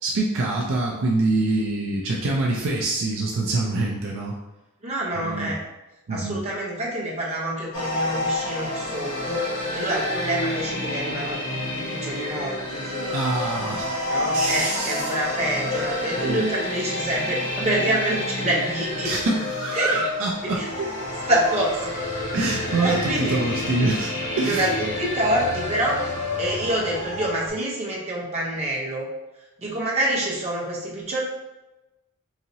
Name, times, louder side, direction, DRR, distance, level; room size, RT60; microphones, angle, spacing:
voice 1, 0.0-4.4 5.2-5.5 6.1-6.4 13.1-14.0 14.3-15.1 16.2-16.4 19.0-20.9 22.3-24.7, right 2 dB, 60° right, -2 dB, 0.5 m, -25 dB
voice 2, 4.8-5.6 6.1-11.4 11.8-13.1 14.1-19.2 19.7-20.0 20.4-20.7 21.3-21.9 22.8-23.4 24.4-26.1 26.4-29.1 29.6-31.2, right 1 dB, 30° right, -5 dB, 0.9 m, -26 dB
sound 1, 7.7-27.5, left 1 dB, 60° left, 1.4 m, -29 dB
4.1 x 2.8 x 2.7 m, 1.0 s
head